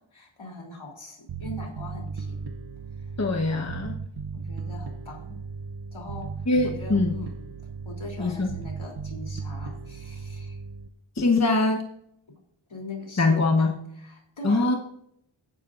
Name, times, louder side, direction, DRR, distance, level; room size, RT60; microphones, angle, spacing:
voice 1, 0.0-2.5 3.0-3.2 4.3-5.4 5.9-7.5 7.8-10.6 12.7-14.8, left 1 dB, 70° left, 0 dB, 3.3 m, -41 dB
Bass guitar, 1.3-10.9, right 5 dB, 50° right, 0.7 m, -36 dB
voice 2, 3.2-4.0 6.5-7.1 8.2-8.5 11.2-11.8 13.2-13.7 14.4-14.7, left 2 dB, 35° left, 3 dB, 1.1 m, -22 dB
16.5 x 9.9 x 2.5 m, 0.73 s
wide cardioid pair, 75°, 49 cm